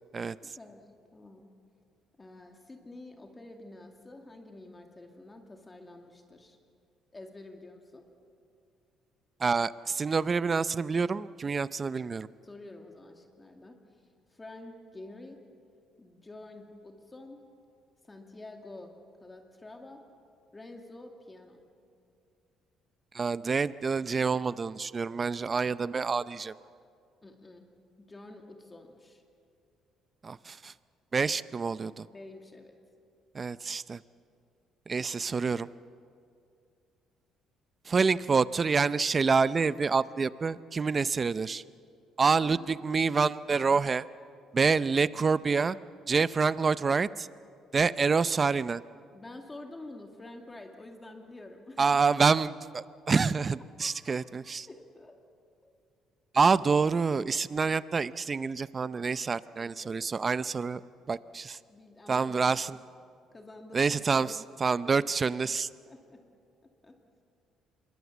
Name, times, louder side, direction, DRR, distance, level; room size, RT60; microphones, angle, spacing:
voice 1, 0.4-0.8 1.1-1.5 2.2-6.6 7.1-8.1 12.4-13.8 14.3-15.4 16.0-17.4 18.1-20.0 20.5-21.6 27.2-27.7 28.0-29.2 32.1-32.8 42.4-42.8 49.1-51.8 53.8-54.2 54.7-55.2 55.6-55.7 59.6-60.0 61.7-62.7 63.3-63.9 64.2-64.3 64.8-64.9 65.9-66.2 66.8-67.0, left 2 dB, 20° left, 3 dB, 2.3 m, -48 dB
voice 2, 9.4-12.3 23.1-26.5 30.2-30.7 31.1-32.1 33.3-34.0 34.9-35.7 37.9-41.6 42.2-44.1 44.5-45.8 46.1-47.3 47.7-48.8 51.8-54.7 56.3-60.8 61.1-61.6 62.1-62.8 63.7-64.3 64.6-65.7, right 5 dB, 30° right, 16 dB, 0.6 m, -27 dB
25.5 x 22.0 x 7.3 m, 2.4 s
cardioid pair, 100°, 0 cm